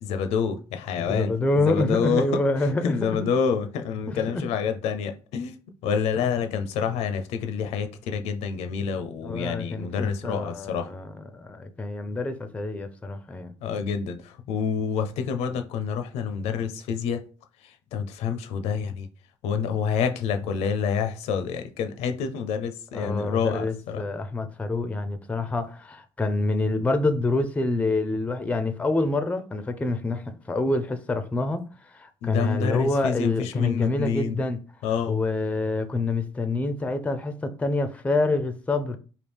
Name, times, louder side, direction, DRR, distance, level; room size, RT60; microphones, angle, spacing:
voice 1, 0.0-2.3 2.8-5.5 5.8-10.9 13.6-17.2 17.6-19.1 19.4-24.0 32.2-34.4 34.8-35.2, left 6 dB, 75° left, 0.5 m, -28 dB
voice 2, 1.1-3.3 4.1-4.4 9.2-13.5 22.9-34.6 35.1-39.0, left 2 dB, 10° left, 0.4 m, -27 dB
3.4 x 2.3 x 3.3 m
cardioid pair, 95°, 11 cm